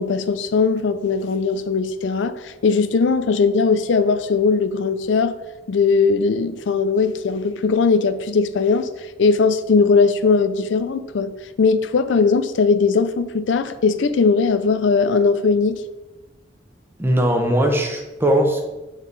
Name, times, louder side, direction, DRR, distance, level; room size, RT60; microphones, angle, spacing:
voice 1, 0.0-5.3 5.7-8.9 9.2-11.3 11.6-15.8, left 4 dB, 85° left, 12 dB, 0.4 m, -19 dB
voice 2, 17.0-18.7, right 1 dB, 15° right, 2 dB, 0.7 m, -19 dB
7.1 x 3.7 x 4.0 m, 1.1 s
head